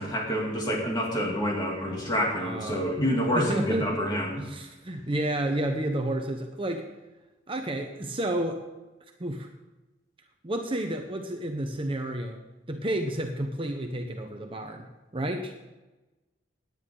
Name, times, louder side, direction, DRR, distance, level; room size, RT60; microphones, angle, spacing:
voice 1, 0.0-4.4, equal, 25° left, -1 dB, 2.8 m, -28 dB
voice 2, 2.4-2.9 3.3-4.0 4.4-6.8 7.5-8.6 9.2-9.5 10.4-12.4 12.7-14.9 15.1-15.5, right 1 dB, 30° right, 4 dB, 0.9 m, -31 dB
17.5 x 10.0 x 3.9 m, 1.1 s
head